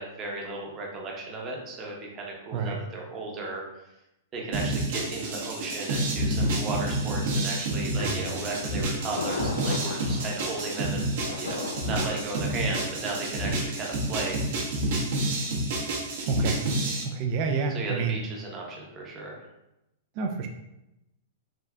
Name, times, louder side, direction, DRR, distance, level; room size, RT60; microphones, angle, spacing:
voice 1, 0.0-3.6 4.3-11.1 11.4-14.4 17.7-19.4, right 2 dB, 30° right, -1 dB, 0.8 m, -35 dB
sound 1, 4.5-17.0, right 1 dB, 65° right, 0.9 m, -29 dB
Bowed string instrument, 8.0-11.5, equal, 55° left, 1.4 m, -42 dB
Thunder, 8.5-14.3, left 4 dB, 85° left, 0.3 m, -38 dB
voice 2, 16.3-16.6 17.0-18.2 20.2-20.5, right 5 dB, 45° right, 3 dB, 0.3 m, -28 dB
3.5 x 2.5 x 2.2 m, 0.90 s
hypercardioid pair, 125°, 0 cm